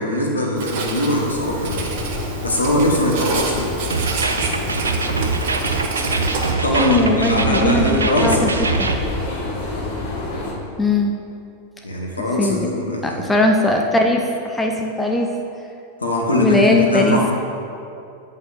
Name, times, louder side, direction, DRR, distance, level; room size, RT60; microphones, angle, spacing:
voice 1, 0.0-1.9 2.4-3.7 6.6-8.5 11.8-13.3 16.0-17.3, left 1 dB, 80° left, -1 dB, 1.2 m, -21 dB
Writing, 0.6-6.5, right 4 dB, 50° right, 0.9 m, -29 dB
sound 1, 1.3-10.5, left 3 dB, 45° left, 1.3 m, -28 dB
sound 2, 3.9-9.0, right 4 dB, 75° right, 0.5 m, -23 dB
voice 2, 6.8-8.5 8.8-8.9 10.8-11.1 12.4-12.7 13.0-15.3 16.3-17.2, left 1 dB, 10° left, 2 dB, 0.5 m, -19 dB
8.2 x 5.5 x 4.0 m, 2.6 s
figure-of-eight pair, 90°, 0 cm